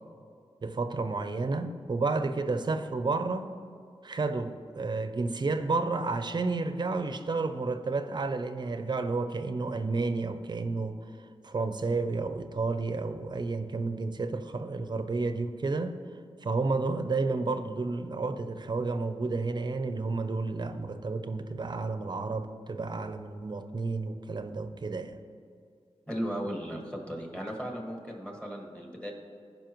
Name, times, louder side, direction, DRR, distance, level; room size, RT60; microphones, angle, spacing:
voice 1, 0.6-3.5 4.0-11.0 11.4-16.0 16.4-25.2, right 3 dB, 45° right, 9 dB, 0.5 m, -31 dB
voice 2, 26.1-29.1, equal, 10° left, -1 dB, 1.6 m, -36 dB
15.5 x 5.3 x 3.0 m, 2.3 s
wide cardioid pair, 100°, 10 cm